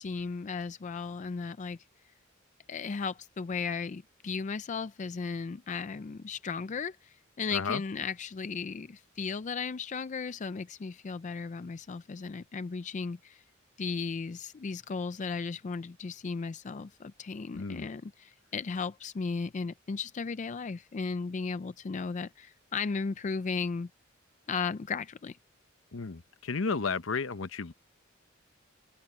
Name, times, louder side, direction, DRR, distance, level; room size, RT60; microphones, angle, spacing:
voice 1, 0.0-1.8 2.7-13.4 13.8-23.9 24.5-25.4, left 5 dB, 40° left, 0.4 m, -35 dB
voice 2, 7.5-7.8 17.5-17.9 25.9-27.7, left 4 dB, 70° left, 0.9 m, -33 dB
head